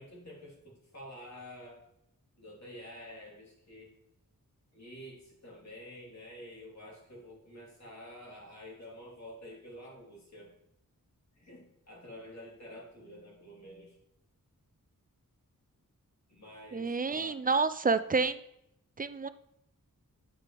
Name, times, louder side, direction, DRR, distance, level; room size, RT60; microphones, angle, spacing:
voice 1, 0.0-1.8 2.4-3.9 4.7-10.5 11.4-14.0 16.3-17.4, equal, 50° left, -3 dB, 2.8 m, -49 dB
voice 2, 16.7-18.4 19.0-19.3, right 4 dB, 25° right, 13 dB, 0.4 m, -29 dB
8.3 x 4.9 x 3.0 m, 0.79 s
cardioid pair, 50°, 35 cm